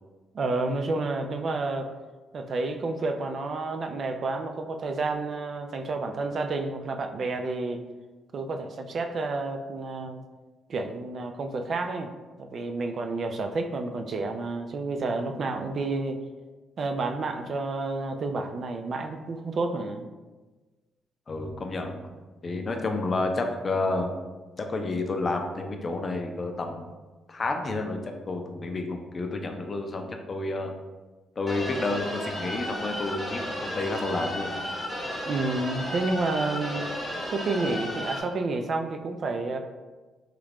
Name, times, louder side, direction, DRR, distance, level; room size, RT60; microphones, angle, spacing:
voice 1, 0.3-1.9 2.3-7.8 8.3-10.2 10.7-12.1 12.4-16.2 16.8-20.1 35.2-36.9 37.3-39.6, right 3 dB, 50° right, 6 dB, 0.3 m, -30 dB
voice 2, 21.3-22.1 22.4-24.1 24.6-26.9 27.3-30.7 31.4-34.6, left 2 dB, 40° left, 4 dB, 0.4 m, -30 dB
sound 1, 31.5-38.2, left 1 dB, 15° left, 0.8 m, -33 dB
3.1 x 2.4 x 3.3 m, 1.2 s
cardioid pair, 90°, 0 cm